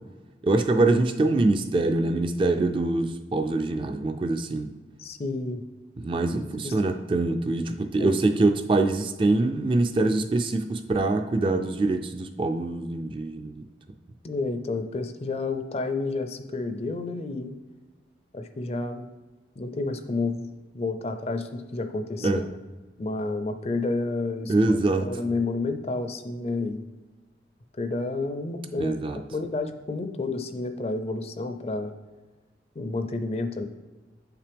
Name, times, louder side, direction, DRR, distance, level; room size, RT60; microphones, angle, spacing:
voice 1, 0.4-4.7 6.0-13.6 22.2-22.4 24.5-25.1 28.8-29.2, right 2 dB, 30° right, 7 dB, 0.3 m, -24 dB
voice 2, 5.0-5.6 6.3-6.8 8.0-8.2 14.2-17.5 18.3-19.1 19.6-20.5 20.7-22.6 23.0-26.8 27.8-31.9 32.8-33.7, left 3 dB, 35° left, 8 dB, 0.4 m, -30 dB
7.4 x 5.8 x 3.4 m, 1.2 s
head